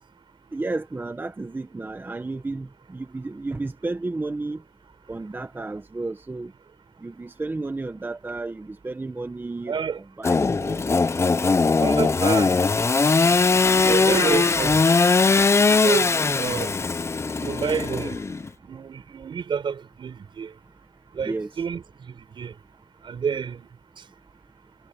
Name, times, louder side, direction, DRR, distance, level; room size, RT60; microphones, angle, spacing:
voice 1, 0.5-4.6 5.1-6.5 7.0-11.6 21.2-21.5, right 2 dB, 25° right, 1.1 m, -32 dB
voice 2, 9.7-10.0 11.8-12.6 13.7-14.9 15.8-16.8 17.4-18.2 18.6-20.5 21.1-22.5 23.0-23.7, right 6 dB, 75° right, 6.2 m, -29 dB
Engine / Sawing, 10.2-18.5, left 4 dB, 35° left, 0.7 m, -20 dB
wide cardioid pair, 115°, 8 cm